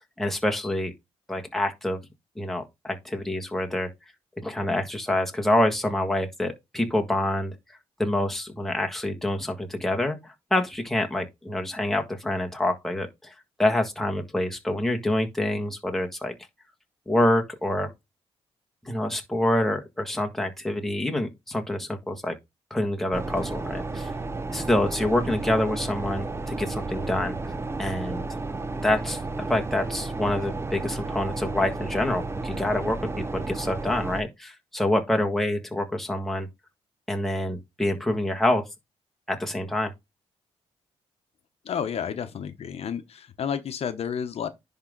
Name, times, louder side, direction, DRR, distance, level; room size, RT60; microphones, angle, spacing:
voice 1, 0.2-0.9 1.3-2.0 2.4-3.9 4.4-7.5 8.0-13.3 13.6-16.3 17.1-17.9 18.8-22.4 22.7-24.1 24.5-27.4 27.8-28.2 28.8-29.2 29.5-36.5 37.1-38.6 39.3-39.9, left 1 dB, 5° left, 1.6 m, -26 dB
sound 1, 23.1-34.2, right 3 dB, 20° right, 0.7 m, -32 dB
voice 2, 41.6-44.5, left 7 dB, 65° left, 0.9 m, -31 dB
10.5 x 3.7 x 3.9 m
cardioid pair, 105°, 11 cm